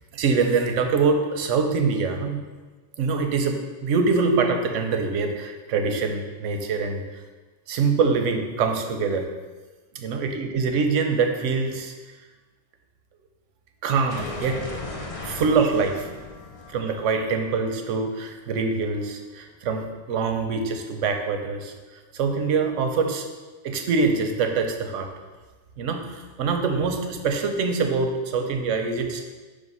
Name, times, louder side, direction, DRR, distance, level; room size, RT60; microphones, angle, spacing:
voice 1, 0.1-2.4 3.0-7.0 7.7-9.3 9.9-11.9 13.8-14.6 15.2-16.1 16.7-21.7 22.1-23.3 23.6-25.1 25.8-29.3, right 4 dB, 90° right, 5 dB, 1.0 m, -24 dB
sound 1, 14.1-18.9, left 3 dB, 40° left, 0.6 m, -38 dB
5.2 x 3.5 x 5.4 m, 1.3 s
omnidirectional pair, 1.2 m